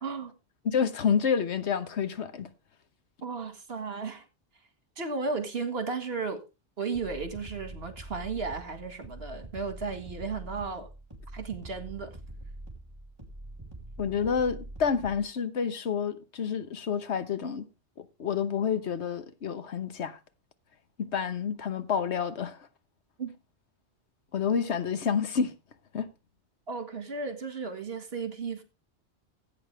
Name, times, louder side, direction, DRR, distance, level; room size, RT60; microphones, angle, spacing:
voice 1, 0.0-0.3 3.2-4.3 5.0-6.4 6.8-10.9 11.3-12.2 23.2-23.4 26.7-28.6, right 4 dB, 60° right, 1.9 m, -34 dB
voice 2, 0.6-2.5 14.0-17.7 18.0-20.2 21.0-22.7 24.3-25.5 25.9-26.1, left 7 dB, 80° left, 1.3 m, -29 dB
sound 1, 6.9-15.3, right 1 dB, 25° right, 3.0 m, -44 dB
16.0 x 8.5 x 3.3 m
omnidirectional pair, 1.1 m